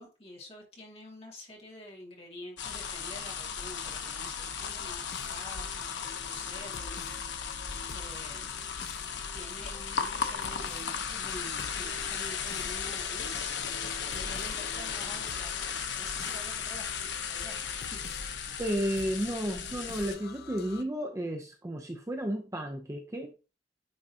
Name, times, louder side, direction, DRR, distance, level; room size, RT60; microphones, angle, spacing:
voice 1, 0.0-5.9 6.2-8.7 9.3-18.0, left 1 dB, 35° left, -1 dB, 2.1 m, -48 dB
sound 1, 2.6-20.1, left 6 dB, 80° left, 0.8 m, -36 dB
sound 2, 4.6-20.8, left 6 dB, 55° left, 0.4 m, -48 dB
voice 2, 18.6-23.3, equal, 15° right, 3 dB, 0.6 m, -33 dB
9.7 x 3.8 x 2.7 m, 0.31 s
head